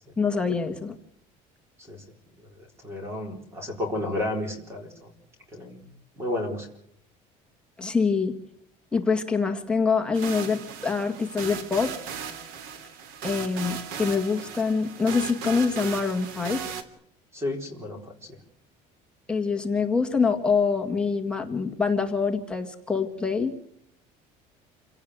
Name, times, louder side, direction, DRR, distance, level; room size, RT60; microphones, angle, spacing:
voice 1, 0.2-0.9 7.8-8.3 8.9-11.9 13.2-16.6 19.3-23.5, left 5 dB, 5° left, 2 dB, 1.9 m, -25 dB
voice 2, 2.8-5.1 5.5-5.8 6.2-6.7 17.3-18.1, left 1 dB, 15° right, 5 dB, 4.3 m, -31 dB
sound 1, 10.1-16.8, right 7 dB, 80° right, 3.1 m, -37 dB
28.0 x 17.5 x 8.1 m, 0.72 s
cardioid pair, 175°, 15 cm